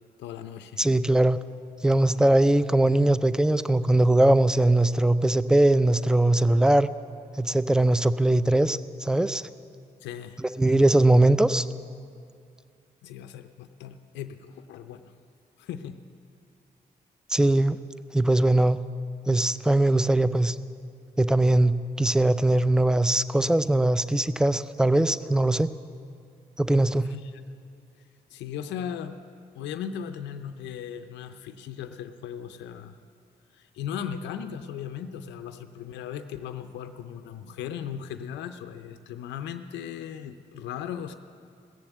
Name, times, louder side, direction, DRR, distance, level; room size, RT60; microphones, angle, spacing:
voice 1, 0.2-0.8 10.0-10.4 13.0-15.1 15.6-16.0 27.0-27.4 28.3-29.2 29.5-32.9 33.5-41.1, left 8 dB, 85° left, 9 dB, 0.5 m, -37 dB
voice 2, 0.8-1.4 1.8-6.9 7.4-9.4 10.4-11.6 17.3-17.8 18.1-18.8 19.3-20.5 21.2-25.7 26.6-27.1, right 1 dB, 5° right, 14 dB, 0.5 m, -21 dB
17.0 x 7.1 x 8.1 m, 2.3 s
supercardioid pair, 45°, 18 cm